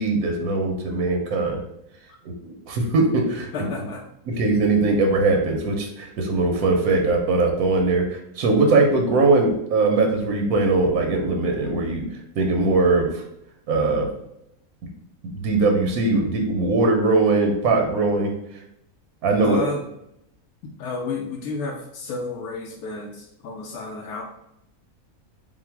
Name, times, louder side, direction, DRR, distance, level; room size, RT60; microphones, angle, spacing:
voice 1, 0.0-1.6 2.2-3.7 4.3-12.1 12.4-13.2 13.7-14.1 15.3-18.3 19.2-19.7, right 3 dB, 85° right, 2 dB, 1.2 m, -21 dB
voice 2, 3.5-4.1 19.4-19.8 20.6-24.2, left 3 dB, 90° left, 0 dB, 1.1 m, -31 dB
4.2 x 2.0 x 4.5 m, 0.79 s
omnidirectional pair, 1.5 m